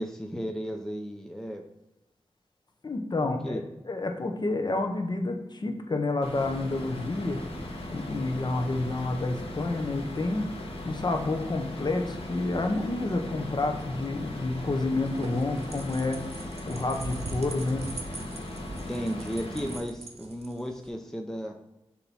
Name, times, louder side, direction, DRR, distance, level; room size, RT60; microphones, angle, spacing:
voice 1, 0.0-1.6 3.4-3.6 18.9-21.6, equal, 5° left, 3 dB, 0.5 m, -34 dB
voice 2, 2.8-3.6 3.9-7.4 7.9-16.3 16.6-17.9, left 2 dB, 45° left, 5 dB, 0.9 m, -29 dB
sound 1, 6.2-19.8, left 1 dB, 65° left, 1.4 m, -38 dB
sound 2, 14.9-20.9, right 3 dB, 85° right, 0.8 m, -42 dB
7.1 x 3.0 x 5.4 m, 0.95 s
wide cardioid pair, 105°, 10 cm